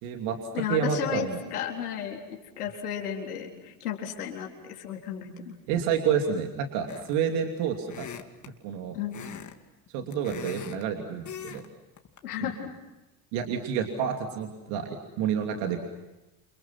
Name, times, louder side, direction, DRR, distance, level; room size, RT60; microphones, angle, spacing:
voice 1, 0.0-1.4 5.7-8.1 8.6-9.0 9.9-11.6 12.4-12.5 13.3-15.8, right 7 dB, 70° right, 3 dB, 3.0 m, -29 dB
voice 2, 0.5-5.6 8.9-9.2 12.2-12.8, left 9 dB, 90° left, 1 dB, 4.1 m, -34 dB
sound 1, 6.9-7.3 7.9-8.5 9.1-9.6 9.9-10.8 11.3-11.7 12.0-12.2, left 8 dB, 40° left, 2.6 m, -41 dB
30.0 x 29.0 x 6.0 m, 1.0 s
hypercardioid pair, 65°, 44 cm